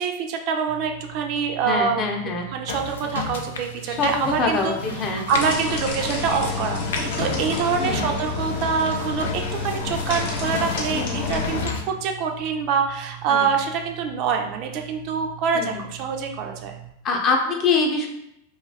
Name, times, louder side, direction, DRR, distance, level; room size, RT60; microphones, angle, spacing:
voice 1, 0.0-2.0 2.5-4.8 5.0-16.8, right 6 dB, 50° right, 4 dB, 0.4 m, -25 dB
sound 1, 0.7-16.9, right 15 dB, 85° right, 0.8 m, -42 dB
voice 2, 1.6-2.5 3.9-4.7 5.0-5.2 7.8-8.2 10.9-11.7 13.3-13.5 15.5-15.8 17.0-18.1, left 4 dB, 35° left, 1 dB, 0.6 m, -25 dB
sound 2, 2.7-11.8, left 5 dB, 90° left, 0.4 m, -33 dB
sound 3, 5.3-11.6, left 4 dB, 65° left, 0.8 m, -29 dB
2.6 x 2.3 x 3.3 m, 0.80 s
hypercardioid pair, 120°, 0 cm